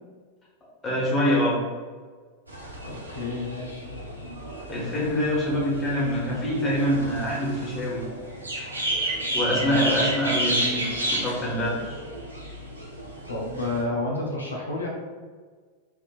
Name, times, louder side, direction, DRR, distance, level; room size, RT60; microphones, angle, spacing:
voice 1, 0.8-1.6 4.7-8.0 9.3-12.0, equal, 20° left, -6 dB, 1.4 m, -25 dB
sound 1, 2.5-13.8, right 1 dB, 80° right, 0.6 m, -32 dB
voice 2, 2.8-3.9 9.6-10.1 13.3-14.9, left 2 dB, 80° left, -3 dB, 0.6 m, -30 dB
4.5 x 2.8 x 2.4 m, 1.5 s
figure-of-eight pair, 90°, 0 cm